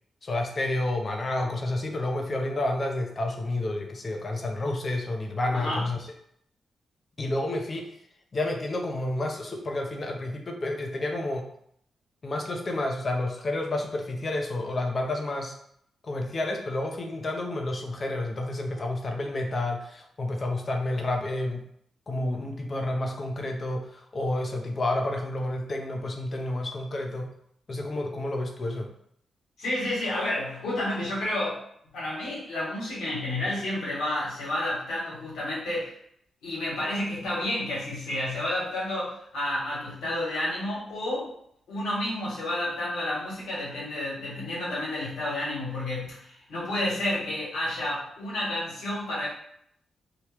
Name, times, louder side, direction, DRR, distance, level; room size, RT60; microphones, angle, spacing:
voice 1, 0.2-6.0 7.2-7.9 8.3-11.5 12.2-15.5 16.0-21.6 22.1-27.3 27.7-28.9, left 2 dB, 45° left, 2 dB, 0.7 m, -30 dB
voice 2, 5.5-5.9 29.6-31.6 31.9-35.9 36.4-41.3 41.7-49.3, left 1 dB, 85° left, -6 dB, 1.5 m, -30 dB
3.0 x 2.3 x 3.3 m, 0.69 s
supercardioid pair, 50°, 0 cm